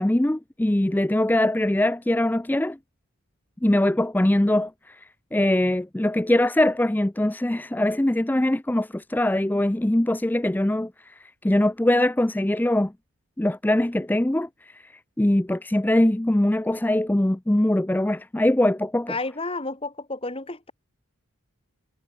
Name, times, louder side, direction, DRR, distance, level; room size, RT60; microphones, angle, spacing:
voice 1, 0.0-2.8 3.6-12.9 13.4-14.9 15.2-19.1, left 1 dB, 10° left, 0.4 m, -22 dB
voice 2, 19.1-20.7, left 3 dB, 25° left, 1.9 m, -31 dB
head